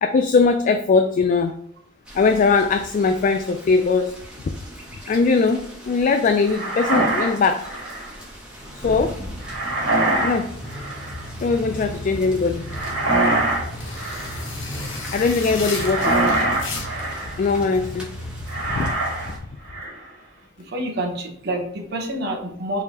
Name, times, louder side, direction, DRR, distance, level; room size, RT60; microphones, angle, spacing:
voice 1, 0.0-1.6 2.1-4.1 5.1-5.6 5.9-7.7 8.7-9.2 10.2-10.5 11.4-12.6 15.1-16.2 17.4-18.1 18.7-18.9 19.3-19.4, left 4 dB, 45° left, 7 dB, 0.3 m, -20 dB
sound 1, 2.0-19.4, equal, 5° right, 1.2 m, -36 dB
sound 2, 6.5-8.1 9.4-10.4 10.7-11.2 12.7-13.7 13.9-14.5 15.7-17.4 18.5-19.3 19.6-20.1, right 2 dB, 85° right, 1.6 m, -24 dB
sound 3, 12.7-17.2, left 3 dB, 70° left, 1.3 m, -34 dB
voice 2, 20.6-22.8, right 1 dB, 60° right, 2 dB, 1.0 m, -28 dB
4.8 x 3.5 x 2.8 m, 0.69 s
head